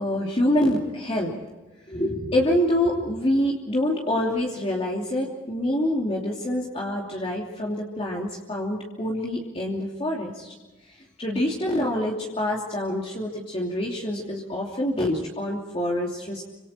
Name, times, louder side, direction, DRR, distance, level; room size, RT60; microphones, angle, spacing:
voice 1, 0.0-1.3 1.9-10.5 10.9-16.4, left 1 dB, 30° left, -2 dB, 3.0 m, -26 dB
27.5 x 26.0 x 4.5 m, 1.1 s
head